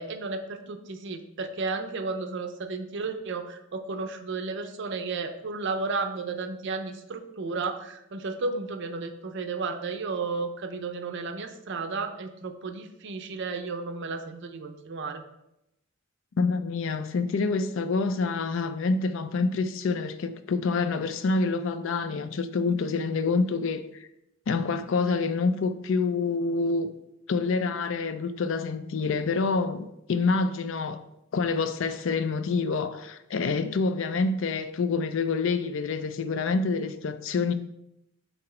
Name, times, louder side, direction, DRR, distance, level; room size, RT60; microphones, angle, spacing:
voice 1, 0.0-15.2, right 4 dB, 60° right, 0.6 m, -33 dB
voice 2, 16.3-24.1 24.5-26.9 27.3-31.0 31.3-37.5, left 4 dB, 70° left, 0.4 m, -27 dB
5.8 x 3.8 x 4.3 m
head